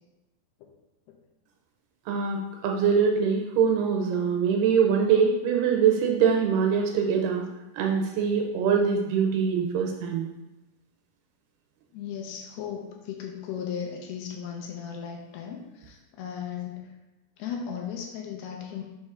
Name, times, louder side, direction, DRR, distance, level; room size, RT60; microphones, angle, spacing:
voice 1, 2.1-7.5 7.8-10.3, right 6 dB, 80° right, 2 dB, 2.5 m, -23 dB
voice 2, 11.9-16.9 17.4-18.8, left 8 dB, 80° left, 1 dB, 2.5 m, -36 dB
6.4 x 3.1 x 4.8 m, 1.0 s
omnidirectional pair, 4.8 m